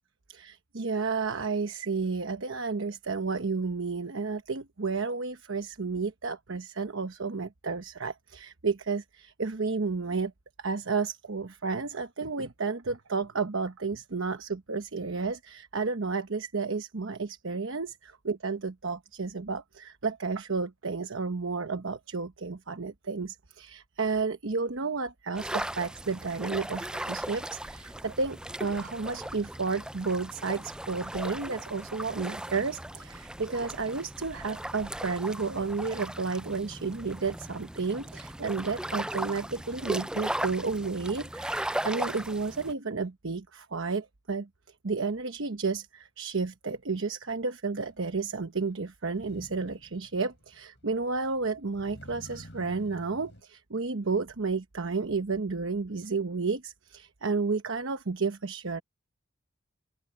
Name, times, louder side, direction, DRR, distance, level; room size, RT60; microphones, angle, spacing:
voice 1, 0.3-10.3 10.6-44.5 44.8-58.8, right 4 dB, 75° right, 1.0 m, -32 dB
sound 1, 25.3-42.7, right 1 dB, 5° right, 0.3 m, -37 dB
Motor vehicle (road), 47.8-47.9 49.1-53.4, equal, 60° left, 7.9 m, -51 dB
open air
head